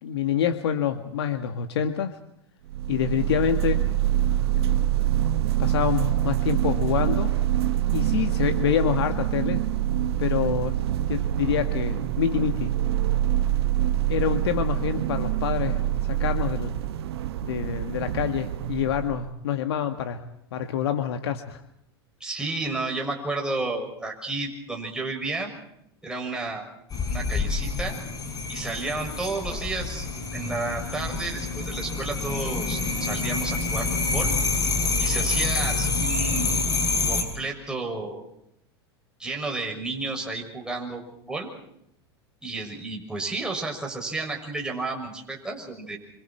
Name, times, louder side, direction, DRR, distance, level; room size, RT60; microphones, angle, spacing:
voice 1, 0.0-2.2 2.9-3.8 4.5-4.8 5.6-7.4 7.9-9.6 10.2-10.8 11.1-12.7 14.1-16.8 17.4-20.2 20.5-21.6, left 9 dB, 75° left, 8 dB, 1.8 m, -27 dB
sound 1, 2.7-19.3, right 12 dB, 75° right, 1.1 m, -25 dB
voice 2, 22.2-25.5 26.0-26.6 27.1-28.0 28.5-30.1 30.3-34.3 35.0-36.5 37.0-38.2 39.2-41.0 41.3-41.5 42.4-46.0, right 3 dB, 5° right, 0 dB, 6.7 m, -31 dB
sound 2, 26.9-37.2, left 3 dB, 25° left, 7.7 m, -27 dB
27.0 x 27.0 x 4.5 m, 0.76 s
hypercardioid pair, 95°, 13 cm